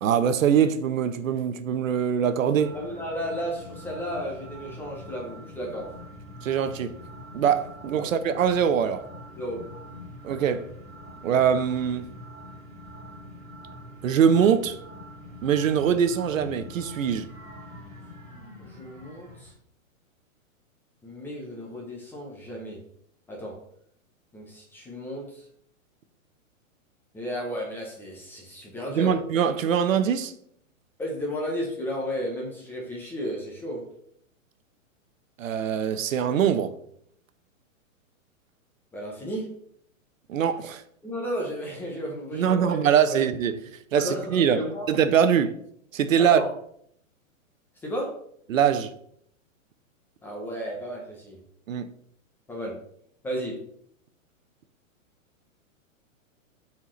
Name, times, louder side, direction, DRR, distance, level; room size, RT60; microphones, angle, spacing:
voice 1, 0.0-2.8 6.4-7.0 7.3-9.0 10.2-10.7 11.2-12.1 14.0-14.8 15.4-17.3 28.9-30.3 35.4-36.8 40.3-40.8 42.3-43.6 43.9-45.6 45.9-46.4 48.5-48.9 51.7-51.9, right 8 dB, 75° right, 0.9 m, -23 dB
sound 1, 2.6-19.5, left 1 dB, 15° right, 3.2 m, -44 dB
voice 2, 2.7-5.9 8.0-8.1 9.3-9.7 18.6-19.5 21.0-22.8 23.3-23.6 24.3-25.5 27.1-29.2 31.0-33.9 38.9-39.6 41.0-43.2 43.9-44.9 46.2-46.5 47.8-48.2 50.2-51.4 52.5-52.8 53.2-53.6, equal, 5° left, 0.7 m, -33 dB
11.5 x 4.4 x 3.1 m
hypercardioid pair, 160°, 40 cm